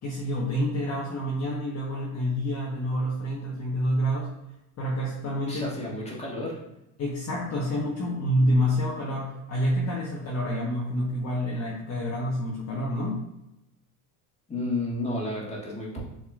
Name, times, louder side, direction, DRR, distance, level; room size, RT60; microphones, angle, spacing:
voice 1, 0.0-4.3 4.8-6.0 7.0-13.2, equal, 35° left, -5 dB, 1.1 m, -28 dB
voice 2, 5.5-6.6 14.5-16.0, left 2 dB, 15° left, -4 dB, 1.6 m, -31 dB
7.2 x 2.9 x 2.4 m, 0.88 s
supercardioid pair, 105°, 46 cm